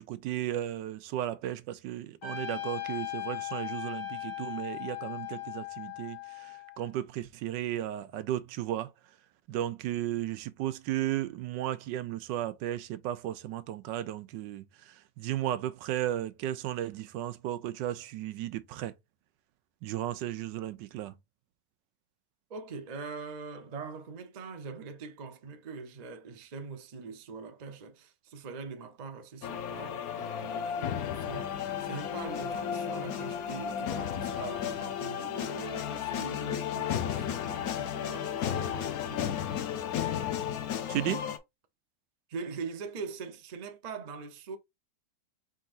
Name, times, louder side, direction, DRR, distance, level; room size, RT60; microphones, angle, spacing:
voice 1, 0.0-8.9 9.5-18.9 19.8-21.1 40.9-41.2, right 13 dB, 90° right, 1.3 m, -34 dB
Trumpet, 2.2-6.9, left 13 dB, 85° left, 1.9 m, -38 dB
voice 2, 22.5-39.4 42.3-44.6, right 4 dB, 60° right, 0.4 m, -43 dB
sound 1, 29.4-41.4, left 9 dB, 65° left, 1.0 m, -33 dB
4.6 x 3.8 x 2.5 m
omnidirectional pair, 1.9 m